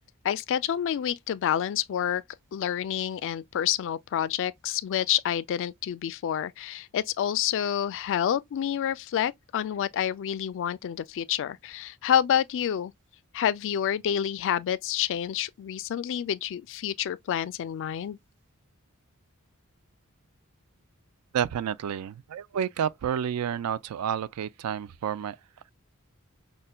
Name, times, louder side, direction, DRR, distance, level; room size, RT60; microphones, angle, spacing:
voice 1, 0.2-2.2 2.5-12.9 13.3-18.2, left 9 dB, 60° left, 0.3 m, -28 dB
voice 2, 21.3-25.4, right 8 dB, 85° right, 0.3 m, -30 dB
5.4 x 2.1 x 2.2 m
head